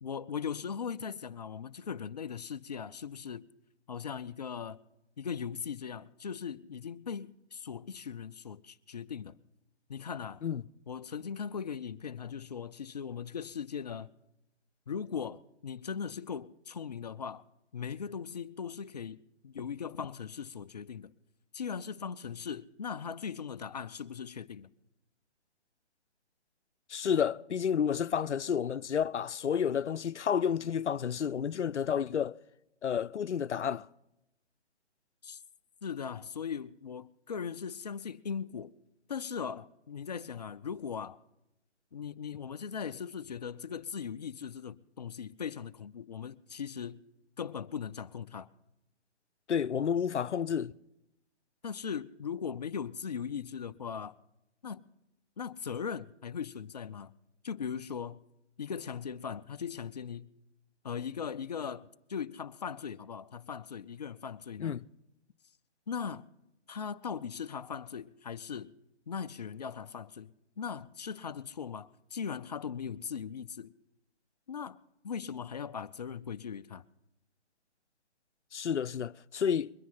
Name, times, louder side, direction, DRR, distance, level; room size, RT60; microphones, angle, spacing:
voice 1, 0.0-3.4 3.9-4.8 5.2-9.4 9.9-10.4 10.9-14.1 14.9-17.4 17.7-19.2 19.4-21.1 21.5-24.7 35.2-35.4 35.8-38.7 39.1-41.2 41.9-47.0 47.4-48.5 51.6-54.1 54.6-54.8 55.4-57.1 57.4-58.2 58.6-60.3 60.8-64.8 65.9-66.2 66.7-68.7 69.1-73.7 74.5-74.8 75.0-76.8, left 7 dB, 35° left, 0.5 m, -39 dB
voice 2, 26.9-32.4 32.8-33.9 49.5-50.7 64.6-64.8 78.5-79.7, left 8 dB, 80° left, 0.6 m, -30 dB
22.0 x 10.0 x 5.6 m
figure-of-eight pair, 145°, 35 cm